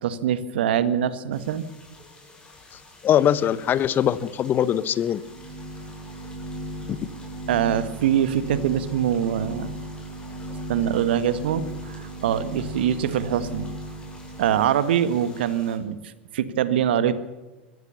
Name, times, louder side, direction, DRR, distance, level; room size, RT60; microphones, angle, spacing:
voice 1, 0.0-1.6 7.5-9.7 10.7-11.6 11.9-13.7 14.4-17.2, right 9 dB, 65° right, 14 dB, 1.6 m, -23 dB
sound 1, 1.3-15.8, left 2 dB, 15° left, 7.6 m, -49 dB
voice 2, 3.0-5.2 7.0-7.1, left 10 dB, 35° left, 17 dB, 1.0 m, -21 dB
sound 2, 5.1-14.8, right 1 dB, 45° right, 3.1 m, -36 dB
24.0 x 16.0 x 7.0 m, 1.1 s
figure-of-eight pair, 85°, 6 cm